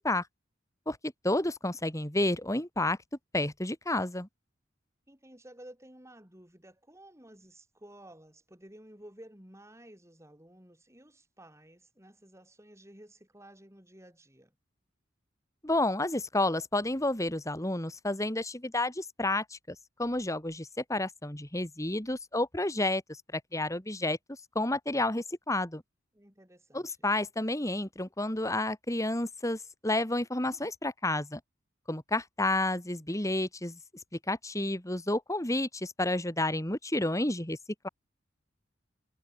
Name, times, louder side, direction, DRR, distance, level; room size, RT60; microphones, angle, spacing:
voice 1, 0.9-3.0 3.3-4.3 15.6-23.0 23.3-24.2 24.5-25.8 26.7-31.4 31.9-33.8 34.3-37.6 37.8-37.9, left 2 dB, 15° left, 2.7 m, -30 dB
voice 2, 5.1-14.5 26.1-27.0, right 1 dB, 15° right, 7.0 m, -53 dB
head